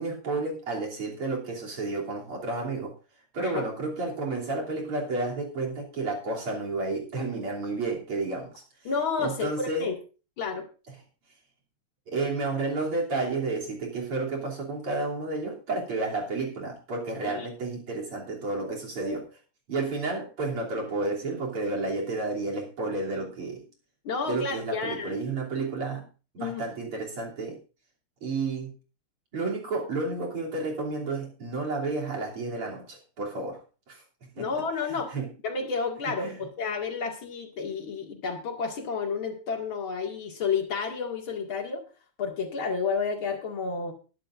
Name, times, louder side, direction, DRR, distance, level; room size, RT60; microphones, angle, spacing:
voice 1, 0.0-2.9 3.3-8.5 9.2-9.9 12.1-19.3 19.7-23.6 24.3-26.0 26.3-27.6 28.2-28.7 29.3-33.6 33.9-34.5 34.9-35.3 36.2-36.4, right 3 dB, 80° right, -2 dB, 4.0 m, -31 dB
voice 2, 8.8-9.9 10.4-10.7 17.2-17.5 24.0-25.2 26.4-26.6 34.4-35.1 35.4-41.8 42.2-43.9, left 5 dB, 65° left, 2 dB, 3.0 m, -31 dB
20.5 x 10.0 x 2.6 m, 0.34 s
omnidirectional pair, 2.4 m